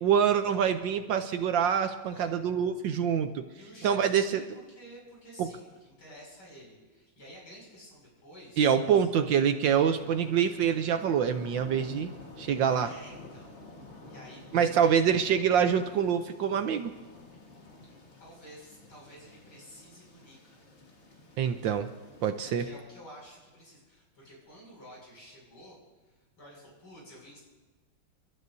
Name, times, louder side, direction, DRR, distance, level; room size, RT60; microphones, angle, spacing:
voice 1, 0.0-3.4 3.8-4.4 5.4-5.5 8.6-12.1 12.4-12.9 14.5-16.9 21.4-21.9 22.2-22.6, right 8 dB, 70° right, 8 dB, 1.3 m, -25 dB
voice 2, 3.6-8.9 12.4-13.5 14.0-14.6 18.2-20.6 22.4-25.8 26.0-27.4, equal, 80° left, -3 dB, 6.8 m, -51 dB
sound 1, 10.0-22.8, left 2 dB, 35° left, 1.7 m, -50 dB
29.0 x 12.5 x 2.7 m, 1.3 s
omnidirectional pair, 2.3 m